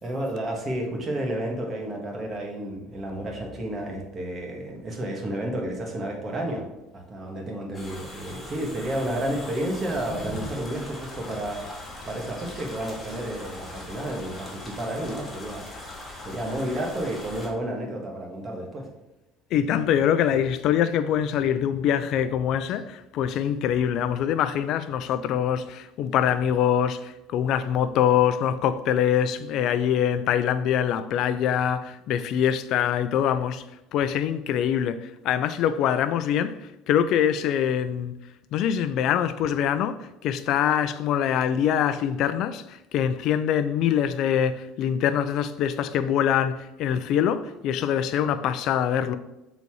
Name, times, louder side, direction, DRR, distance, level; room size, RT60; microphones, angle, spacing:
voice 1, 0.0-6.7 6.9-15.7 16.3-18.9, right 1 dB, 30° right, 1.8 m, -31 dB
sound 1, 7.7-17.5, left 1 dB, 15° left, 2.2 m, -40 dB
voice 2, 19.5-33.6 33.9-38.1 38.5-49.2, left 9 dB, 60° left, 0.5 m, -24 dB
6.8 x 4.1 x 4.8 m
cardioid pair, 120°, 0 cm